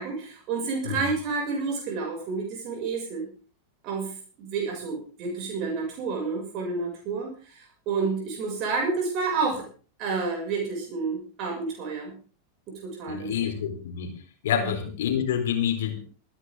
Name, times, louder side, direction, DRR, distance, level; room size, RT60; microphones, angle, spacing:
voice 1, 0.0-3.3 3.8-4.1 4.4-9.7 10.0-12.1 12.8-13.3 14.5-14.7, right 4 dB, 40° right, -1 dB, 7.2 m, -30 dB
voice 2, 13.1-14.1 14.4-16.0, left 9 dB, 60° left, 4 dB, 4.5 m, -27 dB
26.5 x 11.5 x 3.9 m, 0.40 s
figure-of-eight pair, 90°, 0 cm